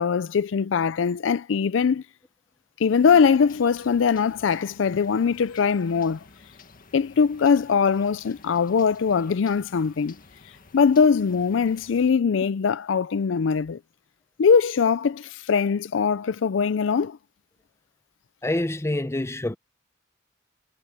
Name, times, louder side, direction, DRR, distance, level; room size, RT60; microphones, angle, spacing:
voice 1, 0.0-2.0 2.8-6.2 6.9-10.1 10.7-13.8 14.4-17.2, left 6 dB, 70° left, 0.4 m, -21 dB
sound 1, 2.9-12.1, left 3 dB, 45° left, 1.9 m, -51 dB
voice 2, 18.4-19.6, left 1 dB, 15° left, 0.7 m, -26 dB
head